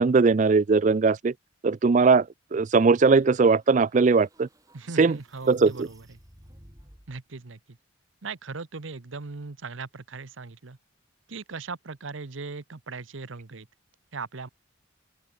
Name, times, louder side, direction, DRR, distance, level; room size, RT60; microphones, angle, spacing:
voice 1, 0.0-1.3 1.6-2.3 2.5-4.5 5.0-5.2 5.5-5.9, right 4 dB, 35° right, 0.4 m, -20 dB
sound 1, 3.2-7.2, right 1 dB, 20° right, 5.2 m, -56 dB
voice 2, 4.7-6.1 7.1-7.8 8.2-10.8 11.3-13.7 14.1-14.5, right 4 dB, 80° right, 1.0 m, -38 dB
open air
head